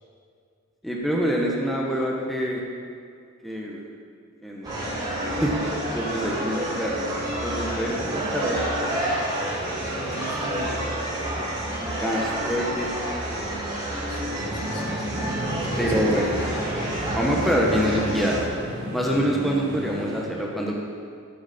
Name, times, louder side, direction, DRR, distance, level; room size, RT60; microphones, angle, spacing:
voice 1, 0.8-2.6 3.4-3.8 4.4-5.0 5.4-5.6 5.9-7.1 7.4-8.6 11.8-12.9 15.8-16.5 17.1-18.5 18.9-20.8, equal, ahead, -3 dB, 1.0 m, -26 dB
sound 1, 4.6-18.4, right 1 dB, 20° right, 3.0 m, -28 dB
voice 2, 6.2-6.6 7.8-8.0 9.9-10.8 12.2-12.3 14.1-15.1 15.6-16.2, equal, 50° left, 0 dB, 1.6 m, -38 dB
sound 2, 14.4-20.2, equal, 50° right, 2.4 m, -33 dB
13.0 x 8.8 x 4.2 m, 2.3 s
head